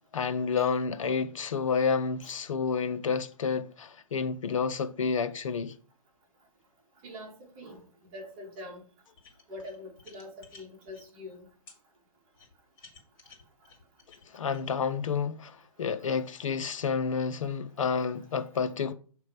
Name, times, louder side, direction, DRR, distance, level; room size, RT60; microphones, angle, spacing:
voice 1, 0.1-5.7 14.3-18.9, left 5 dB, 60° left, 0.7 m, -30 dB
voice 2, 7.0-8.8 9.5-11.5, left 1 dB, 30° right, 2.0 m, -44 dB
sound 1, 9.2-11.1 11.7-11.8 12.3-14.7, left 4 dB, 30° left, 2.1 m, -54 dB
7.4 x 3.2 x 4.9 m
hypercardioid pair, 140°, 18 cm